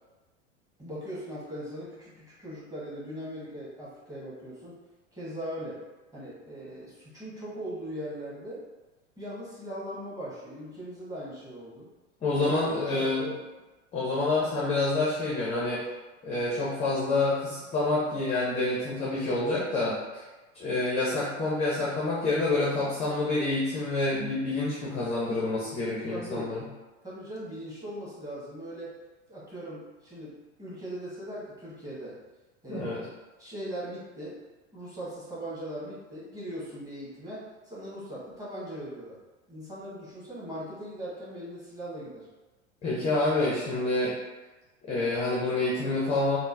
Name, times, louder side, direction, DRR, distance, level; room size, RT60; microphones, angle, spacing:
voice 1, 0.8-4.8 5.1-5.8 6.1-8.6 9.2-11.9 12.3-13.4 26.1-26.5 27.0-28.9 29.3-30.3 30.6-32.1 32.6-33.1 33.4-34.4 34.7-39.2 39.5-42.3, right 1 dB, 10° right, -9 dB, 1.3 m, -39 dB
voice 2, 12.2-13.2 13.9-15.8 16.2-20.2 20.5-26.6 32.7-33.0 42.8-44.1 44.9-46.4, left 2 dB, 15° left, -6 dB, 0.5 m, -27 dB
3.5 x 2.0 x 2.6 m, 1.2 s
figure-of-eight pair, 85°, 38 cm